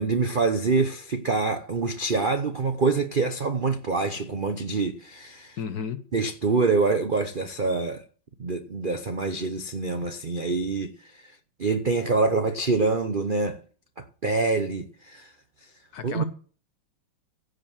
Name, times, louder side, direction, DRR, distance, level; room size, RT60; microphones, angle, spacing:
voice 1, 0.0-5.6 6.1-8.0 8.4-11.2 11.6-13.6 14.0-15.3 16.0-16.2, right 4 dB, 70° right, 0.4 m, -25 dB
voice 2, 5.6-6.0 15.9-16.2, left 6 dB, 55° left, 1.2 m, -33 dB
16.0 x 5.3 x 7.2 m
omnidirectional pair, 2.3 m